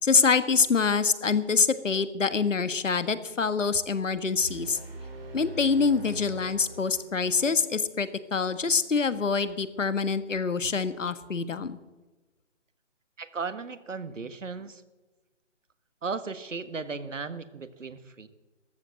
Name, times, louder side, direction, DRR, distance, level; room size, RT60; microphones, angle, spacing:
voice 1, 0.0-4.8 5.3-11.8, left 5 dB, 85° left, 13 dB, 1.5 m, -25 dB
sound 1, 4.4-7.4, right 1 dB, 50° right, 3.8 m, -42 dB
voice 2, 13.2-14.8 16.0-18.3, right 4 dB, 85° right, 12 dB, 1.6 m, -36 dB
14.0 x 13.0 x 7.6 m, 1.2 s
hypercardioid pair, 165°, 37 cm